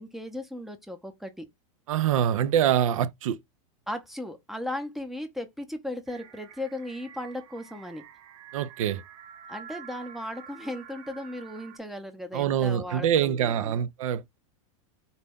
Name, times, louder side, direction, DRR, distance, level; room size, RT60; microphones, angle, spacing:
voice 1, 0.0-1.5 3.9-8.0 9.5-13.8, left 1 dB, ahead, 0.5 m, -36 dB
voice 2, 1.9-3.4 8.5-9.0 12.3-14.4, right 9 dB, 90° right, 0.5 m, -25 dB
sound 1, 6.1-11.8, right 8 dB, 45° right, 0.7 m, -48 dB
4.0 x 2.2 x 3.4 m
supercardioid pair, 155°, 17 cm